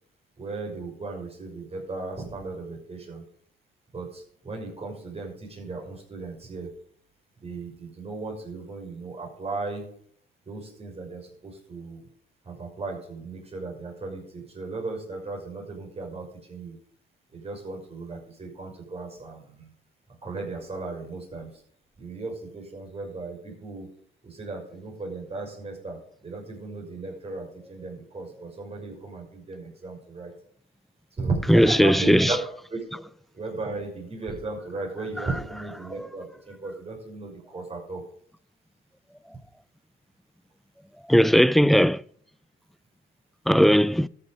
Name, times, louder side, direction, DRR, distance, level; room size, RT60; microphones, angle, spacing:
voice 1, 0.4-3.2 3.9-6.7 7.4-9.9 10.5-12.0 12.4-16.7 17.3-19.7 20.2-21.5 22.0-23.9 24.2-30.3 31.1-32.4 32.7-33.0 33.3-38.0, right 3 dB, 30° right, 5.9 m, -36 dB
voice 2, 31.5-32.3 41.1-42.0 43.5-44.1, equal, ahead, 0.3 m, -18 dB
13.5 x 7.1 x 5.3 m
cardioid pair, 90°, 20 cm